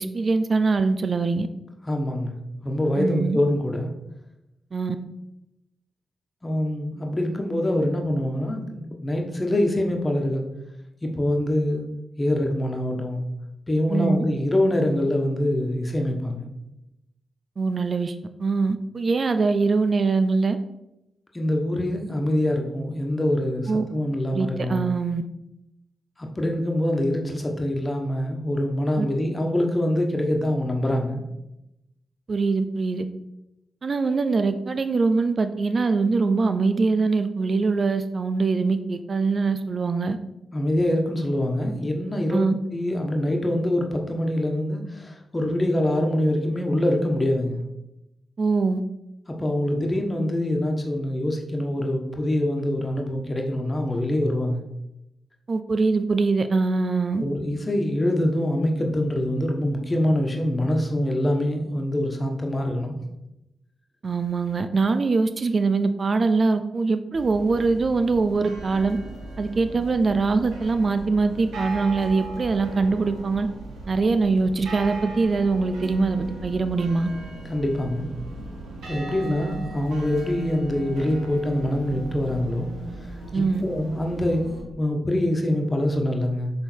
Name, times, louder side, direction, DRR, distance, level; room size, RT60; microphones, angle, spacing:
voice 1, 0.0-1.5 3.0-3.4 4.7-5.0 13.9-14.2 17.6-20.6 23.7-23.8 24.3-25.2 29.0-29.1 32.3-33.0 33.8-40.2 42.3-42.6 48.4-48.8 55.5-57.2 64.0-69.0 69.4-73.5 73.9-77.1 83.3-83.6, right 4 dB, 55° right, 10 dB, 0.4 m, -23 dB
voice 2, 1.8-2.4 2.6-3.9 6.4-10.4 11.0-11.8 12.2-13.3 13.7-16.5 21.3-24.9 26.2-31.2 40.5-47.6 49.3-54.6 57.2-63.0 77.5-78.1 78.9-82.7 83.0-83.1 83.3-86.5, left 1 dB, 30° left, 2 dB, 1.4 m, -24 dB
sound 1, 67.1-84.6, right 2 dB, 80° right, 1.1 m, -38 dB
6.4 x 3.6 x 4.5 m, 0.89 s
supercardioid pair, 40°, 0 cm